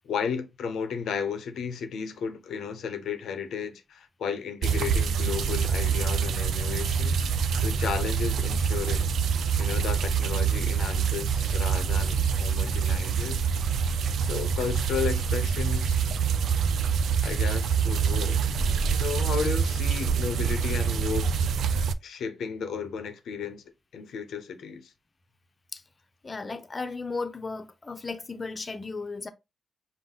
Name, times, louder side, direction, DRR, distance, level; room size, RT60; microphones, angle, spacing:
voice 1, 0.1-7.3 7.6-9.1 9.6-13.4 14.2-16.0 17.2-21.3 22.0-23.6 23.9-24.9, left 6 dB, 85° left, 0.7 m, -33 dB
sound 1, 4.6-21.9, right 6 dB, 85° right, 0.4 m, -26 dB
voice 2, 26.2-29.3, left 3 dB, 35° left, 0.7 m, -35 dB
5.4 x 2.2 x 3.8 m
cardioid pair, 75°, 0 cm